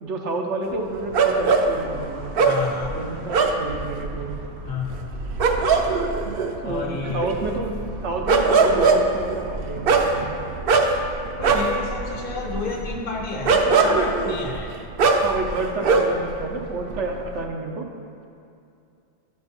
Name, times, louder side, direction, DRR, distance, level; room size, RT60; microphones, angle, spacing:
voice 1, 0.0-2.3 2.9-4.4 6.6-7.7 8.0-10.4 15.2-17.8, right 3 dB, 85° right, 1 dB, 1.2 m, -29 dB
sound 1, 1.1-16.4 16.6-17.4, right 4 dB, 60° right, 0.8 m, -22 dB
voice 2, 2.4-3.0 4.6-5.0 6.6-7.3 11.4-14.8, left 4 dB, 55° left, 1 dB, 1.0 m, -30 dB
11.5 x 4.4 x 4.3 m, 2.5 s
omnidirectional pair, 1.2 m